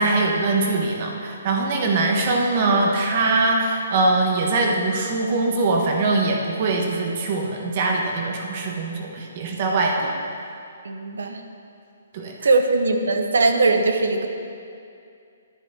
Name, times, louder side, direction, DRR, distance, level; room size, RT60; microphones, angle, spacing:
voice 1, 0.0-10.1 12.1-12.5, right 3 dB, 40° right, 0 dB, 1.3 m, -22 dB
voice 2, 10.8-11.4 12.4-14.3, right 3 dB, 85° right, 6 dB, 0.9 m, -20 dB
9.9 x 8.1 x 4.4 m, 2.4 s
hypercardioid pair, 160°, 0 cm